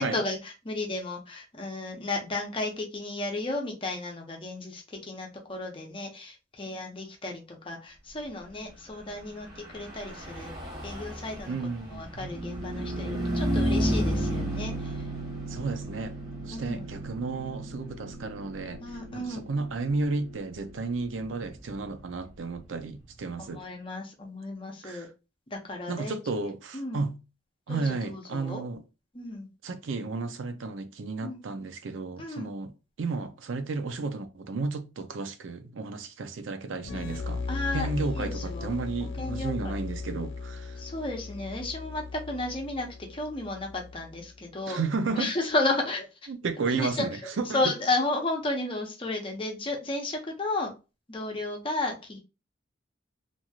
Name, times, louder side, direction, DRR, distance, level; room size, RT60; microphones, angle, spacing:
voice 1, 0.0-10.5 10.8-11.6 11.9-15.1 16.5-16.9 18.8-19.5 23.4-25.1 25.5-26.1 26.7-27.1 27.7-28.6 29.1-29.5 31.2-31.4 32.2-32.5 37.5-37.9 38.1-38.7 39.2-39.7 40.8-44.8 45.2-46.1 46.6-47.1 47.5-50.7 51.1-52.2, left 2 dB, 30° left, 0.7 m, -33 dB
Car passing by / Truck, 9.4-23.1, right 1 dB, 20° right, 1.0 m, -33 dB
voice 2, 11.5-12.1 15.5-16.2 16.4-18.8 19.1-23.6 24.8-25.1 25.9-27.2 27.7-28.8 29.6-32.7 33.0-37.4 37.7-40.8 44.7-45.3 46.3-47.7, right 3 dB, 90° right, 0.5 m, -33 dB
sound 1, 36.8-44.4, left 4 dB, 70° left, 0.3 m, -37 dB
3.0 x 2.6 x 2.3 m
head